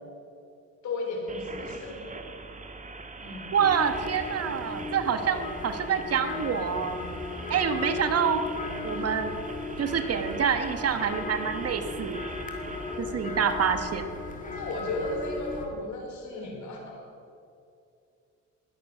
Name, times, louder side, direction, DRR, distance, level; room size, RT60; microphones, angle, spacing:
voice 1, 0.8-2.1 3.2-3.6 9.0-9.2 12.9-13.0 14.5-17.1, left 2 dB, 70° left, 0 dB, 4.5 m, -35 dB
sound 1, 1.3-13.0, right 3 dB, 25° right, 1.5 m, -44 dB
voice 2, 3.5-7.0 7.5-8.4 8.8-9.4 9.8-12.2 13.0-14.0, right 7 dB, 55° right, 8 dB, 1.3 m, -27 dB
sound 2, 3.6-15.7, left 2 dB, 25° left, 2.6 m, -36 dB
20.5 x 8.5 x 6.3 m, 2.5 s
cardioid pair, 90°, 30 cm